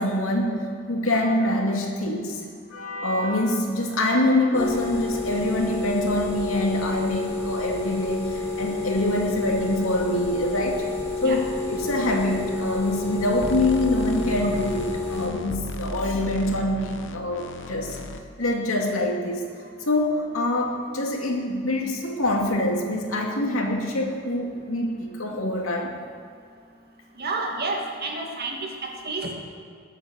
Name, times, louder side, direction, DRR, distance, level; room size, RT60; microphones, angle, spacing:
voice 1, 0.0-2.4 2.7-10.8 11.2-18.0 18.4-19.5 19.9-26.0, left 1 dB, 85° left, 1 dB, 2.4 m, -25 dB
sound 1, 4.5-15.3, left 4 dB, 10° left, 2.4 m, -30 dB
sound 2, 13.4-18.2, left 2 dB, 60° left, 1.0 m, -35 dB
voice 2, 27.2-29.3, right 3 dB, 50° right, 1 dB, 2.2 m, -30 dB
21.0 x 8.2 x 6.5 m, 2.2 s
head